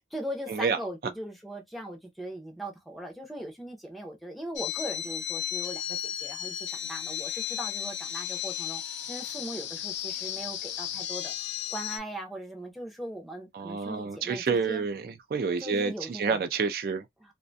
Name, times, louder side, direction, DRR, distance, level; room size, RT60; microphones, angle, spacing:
voice 1, 0.1-8.8 9.1-11.3 11.7-14.9 15.6-16.4 17.2-17.3, right 1 dB, ahead, 0.5 m, -39 dB
sound 1, 4.6-12.0, left 10 dB, 85° left, 0.4 m, -34 dB
voice 2, 13.5-17.0, right 5 dB, 55° right, 0.3 m, -29 dB
2.4 x 2.2 x 2.6 m
head